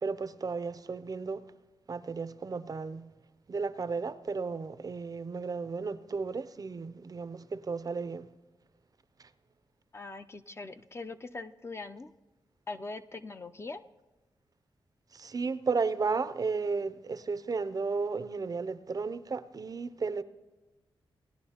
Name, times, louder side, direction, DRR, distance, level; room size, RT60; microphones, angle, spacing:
voice 1, 0.0-1.4 1.9-3.1 3.5-8.3 9.2-9.3 15.1-20.2, right 4 dB, 45° right, 0.5 m, -34 dB
voice 2, 9.9-12.1 12.7-13.8, left 3 dB, 30° left, 0.4 m, -41 dB
19.0 x 10.5 x 2.8 m
cardioid pair, 75°, 9 cm